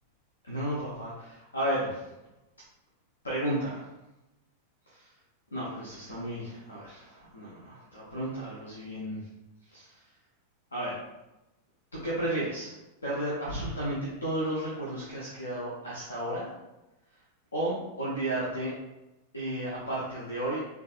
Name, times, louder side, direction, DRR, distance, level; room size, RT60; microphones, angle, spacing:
voice 1, 0.4-2.1 3.2-3.9 4.9-5.1 5.5-9.3 9.7-10.0 10.7-11.0 11.9-12.7 13.0-16.5 17.5-18.7 19.3-20.6, right 1 dB, 75° left, -6 dB, 0.7 m, -33 dB
3.4 x 3.2 x 2.4 m, 0.99 s
figure-of-eight pair, 90°, 0 cm